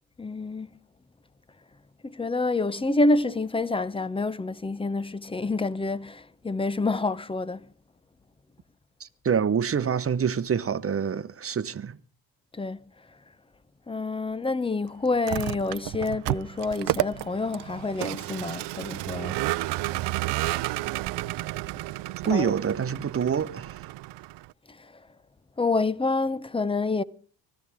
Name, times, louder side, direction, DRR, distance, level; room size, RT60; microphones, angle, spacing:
voice 1, 0.2-0.7 2.0-7.7 12.5-12.8 13.9-19.4 22.3-22.5 24.7-24.8 25.6-27.0, left 3 dB, 10° left, 0.7 m, -27 dB
voice 2, 9.0-12.0 22.3-23.8, right 7 dB, 30° right, 1.1 m, -26 dB
Vehicle, 15.1-24.5, right 18 dB, 65° right, 0.6 m, -31 dB
24.0 x 14.5 x 3.6 m
cardioid pair, 95°, 46 cm